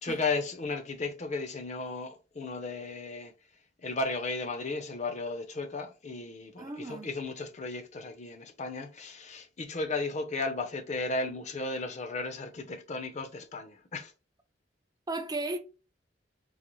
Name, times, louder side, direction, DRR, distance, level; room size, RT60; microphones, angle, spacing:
voice 1, 0.0-3.3 3.8-14.1, left 3 dB, 40° left, 0.5 m, -35 dB
voice 2, 6.6-7.1 15.1-15.6, right 2 dB, 20° right, 0.4 m, -35 dB
3.9 x 2.0 x 3.0 m
head